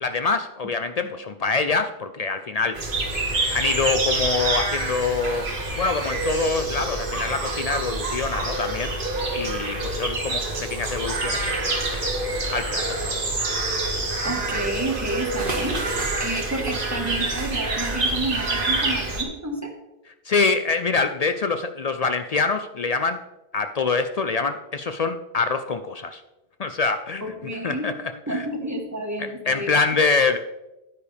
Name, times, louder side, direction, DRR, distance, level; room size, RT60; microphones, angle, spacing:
voice 1, 0.0-2.8 3.5-5.4 5.8-8.9 9.3-12.2 12.5-12.8 20.2-23.2 23.5-26.2 26.6-27.2 27.6-27.9 28.3-28.4 29.2-30.4, left 4 dB, 55° left, 9 dB, 0.4 m, -25 dB
sound 1, 2.8-19.2, right 2 dB, 55° right, 1.5 m, -26 dB
voice 2, 14.2-19.7 27.2-27.9 28.3-29.7, right 1 dB, 15° right, 2 dB, 1.4 m, -30 dB
9.6 x 9.5 x 3.4 m, 0.97 s
omnidirectional pair, 1.0 m